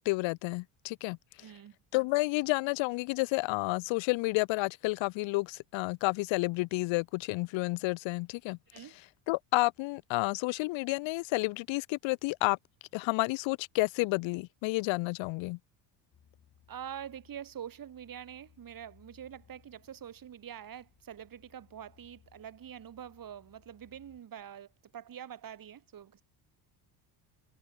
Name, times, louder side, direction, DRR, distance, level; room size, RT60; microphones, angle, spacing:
voice 1, 0.0-1.2 1.9-8.6 9.3-12.6 12.9-15.6, left 24 dB, 65° left, 0.8 m, -30 dB
voice 2, 1.4-1.8 8.7-8.9 16.7-26.2, right 9 dB, 40° right, 2.7 m, -45 dB
Future Ambience Background, 16.1-24.2, left 9 dB, 45° left, 4.4 m, -64 dB
supercardioid pair, 75°, 50 cm